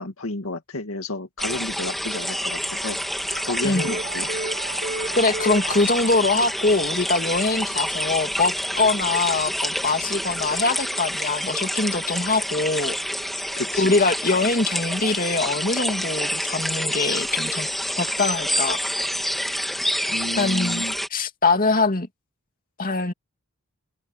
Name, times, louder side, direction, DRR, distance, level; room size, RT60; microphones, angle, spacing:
voice 1, 0.0-3.0 3.4-4.3 13.6-13.8 20.1-20.9, left 2 dB, 80° left, 2.2 m, -31 dB
sound 1, 1.4-21.1, equal, ahead, 2.8 m, -28 dB
sound 2, 2.1-5.9 8.8-8.9 9.6-9.7 11.5-11.6 11.9-12.0 12.3-12.4 12.6-12.7 13.5-13.6 14.0-14.1 15.1-15.2 18.1-18.3 19.3-19.4 19.6-19.7 19.9-20.0, right 2 dB, 45° right, 5.4 m, -34 dB
voice 2, 5.2-12.9 13.8-17.7 18.0-18.8 20.4-20.8 21.1-22.1 22.8-23.1, left 3 dB, 40° left, 2.8 m, -23 dB
open air
head